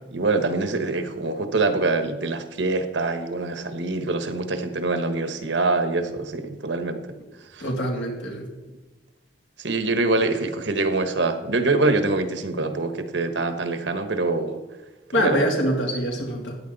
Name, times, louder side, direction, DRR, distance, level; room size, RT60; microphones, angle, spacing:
voice 1, 0.1-7.1 7.5-7.6 9.6-14.6 15.1-15.4, right 3 dB, 90° right, 8 dB, 1.2 m, -24 dB
voice 2, 7.6-8.5 15.1-16.6, equal, 85° left, 0 dB, 2.8 m, -24 dB
14.5 x 10.0 x 4.0 m, 1.2 s
head